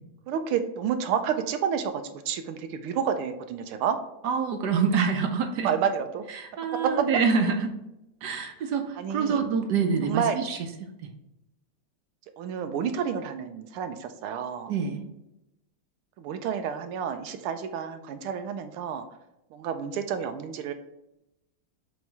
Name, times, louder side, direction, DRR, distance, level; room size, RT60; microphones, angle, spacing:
voice 1, 0.3-4.0 5.6-6.2 6.7-7.1 9.0-9.4 10.0-10.4 12.4-14.7 16.2-19.0 19.5-20.7, right 7 dB, 85° right, 7 dB, 1.5 m, -29 dB
voice 2, 4.2-5.7 6.3-7.7 8.2-10.6 14.7-15.0, right 5 dB, 65° right, 5 dB, 1.1 m, -26 dB
7.0 x 3.1 x 4.6 m, 0.89 s
omnidirectional pair, 2.3 m